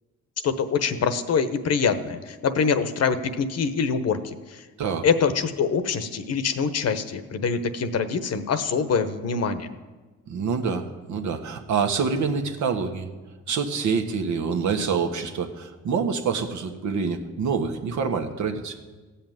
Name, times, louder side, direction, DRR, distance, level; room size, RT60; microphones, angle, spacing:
voice 1, 0.4-4.6 5.0-9.7, left 5 dB, 55° left, 11 dB, 1.0 m, -24 dB
voice 2, 10.3-13.1 13.5-18.8, right 5 dB, 70° right, 5 dB, 1.4 m, -26 dB
15.0 x 5.7 x 9.3 m, 1.3 s
cardioid pair, 90°, 30 cm